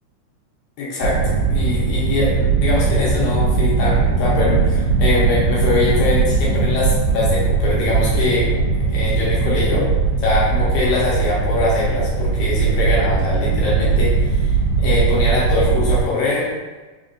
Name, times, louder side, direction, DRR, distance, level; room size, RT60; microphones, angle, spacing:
voice 1, 0.8-8.6 8.9-16.5, left 3 dB, 80° left, -6 dB, 2.0 m, -22 dB
sound 1, 1.0-16.0, right 4 dB, 80° right, 1.7 m, -19 dB
5.1 x 2.2 x 2.5 m, 1.3 s
omnidirectional pair, 3.7 m